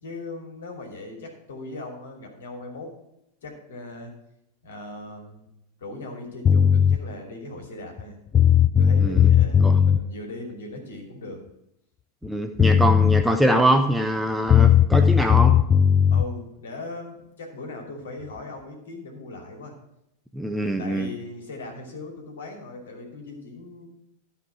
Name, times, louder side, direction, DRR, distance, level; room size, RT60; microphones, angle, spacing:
voice 1, 0.0-2.9 3.4-4.1 4.6-5.5 5.8-8.2 8.8-11.4 16.1-19.7 20.8-23.9, left 2 dB, 65° left, 2 dB, 2.8 m, -39 dB
sound 1, 6.4-7.0 8.0-8.1 8.3-10.0 12.2-12.3 12.6-13.2 14.5-16.3, left 8 dB, 25° left, 0.3 m, -17 dB
voice 2, 9.0-9.3 9.6-9.8 12.2-15.6 20.3-21.1, right 1 dB, 5° right, 5 dB, 0.7 m, -23 dB
13.5 x 5.7 x 4.7 m, 0.81 s
figure-of-eight pair, 90°, 0 cm